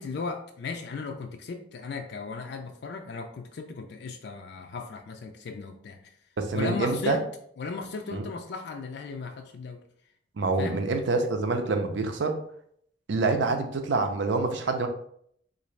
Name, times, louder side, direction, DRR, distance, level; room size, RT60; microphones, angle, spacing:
voice 1, 0.0-6.1 6.5-7.2 7.6-9.8 10.6-10.8, left 4 dB, 65° left, 5 dB, 0.4 m, -36 dB
voice 2, 6.4-7.2 8.1-8.3 10.4-12.4 13.1-14.9, right 3 dB, 80° right, 6 dB, 0.5 m, -26 dB
3.7 x 2.6 x 3.1 m, 0.67 s
head